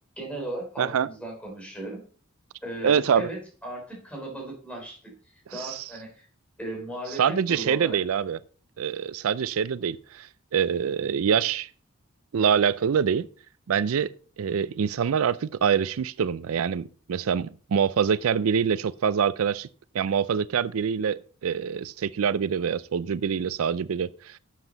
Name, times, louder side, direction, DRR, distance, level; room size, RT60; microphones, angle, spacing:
voice 1, 0.2-2.0 2.6-6.3 6.6-8.0, right 1 dB, 5° left, 3.9 m, -37 dB
voice 2, 0.8-1.1 2.8-3.3 5.6-5.8 7.2-8.4 8.8-10.3 10.5-11.7 12.3-13.3 13.7-14.1 14.4-19.7 19.9-24.4, right 7 dB, 85° right, 0.4 m, -25 dB
11.5 x 7.4 x 4.0 m
head